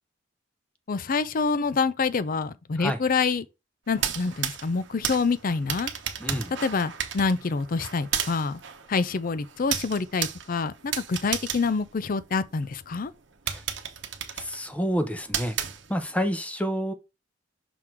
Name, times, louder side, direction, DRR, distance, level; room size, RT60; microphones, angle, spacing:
voice 1, 0.9-3.5 3.9-5.9 6.6-8.6 8.9-13.1, left 4 dB, 45° left, 0.5 m, -26 dB
sound 1, 3.9-12.6 13.1-13.2 13.5-16.2, right 9 dB, 65° right, 0.9 m, -34 dB
voice 2, 6.2-6.5 13.5-13.6 14.4-15.6 15.9-16.9, equal, 5° left, 0.7 m, -28 dB
6.0 x 3.7 x 4.4 m
head